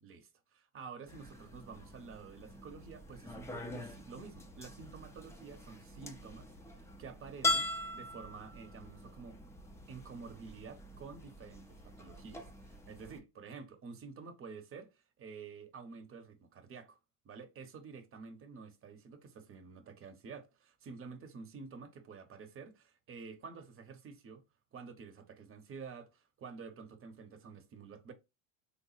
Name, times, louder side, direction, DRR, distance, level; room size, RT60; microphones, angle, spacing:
voice 1, 0.0-9.4 9.9-17.0 17.2-24.4 24.7-28.1, right 5 dB, 30° right, 0.8 m, -50 dB
sound 1, 1.1-13.2, left 1 dB, 5° left, 0.5 m, -42 dB
3.5 x 2.0 x 3.9 m
supercardioid pair, 110°, 42 cm